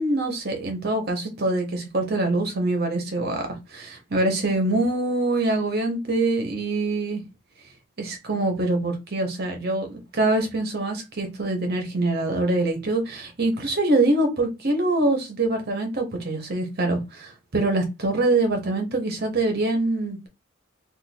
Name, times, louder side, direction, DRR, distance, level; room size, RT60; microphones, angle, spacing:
voice 1, 0.0-7.2 8.0-20.3, right 2 dB, 50° right, 1.0 m, -24 dB
2.6 x 2.6 x 4.2 m
head